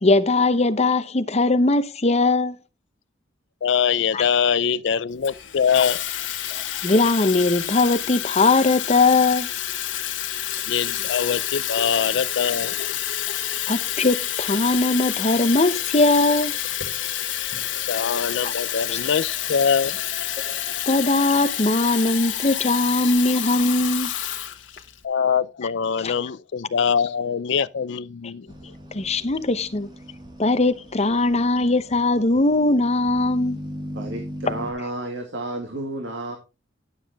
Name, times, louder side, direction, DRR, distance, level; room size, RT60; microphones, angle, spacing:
voice 1, 0.0-2.6 4.1-4.2 6.5-9.5 13.7-16.5 18.4-18.5 18.9-19.0 20.4-20.6 20.9-24.1 26.0-26.1 28.9-29.9 30.4-33.6, left 2 dB, 35° left, 0.8 m, -20 dB
voice 2, 3.6-6.0 10.7-12.8 17.9-20.0 25.0-28.5, left 7 dB, 65° left, 0.4 m, -23 dB
Water tap faucet / Fill (with liquid), 5.2-25.0, left 11 dB, 90° left, 1.3 m, -28 dB
sound 1, 28.5-34.7, equal, 25° right, 2.2 m, -38 dB
voice 3, 33.9-36.4, right 2 dB, 70° right, 2.0 m, -31 dB
11.0 x 7.3 x 3.5 m
head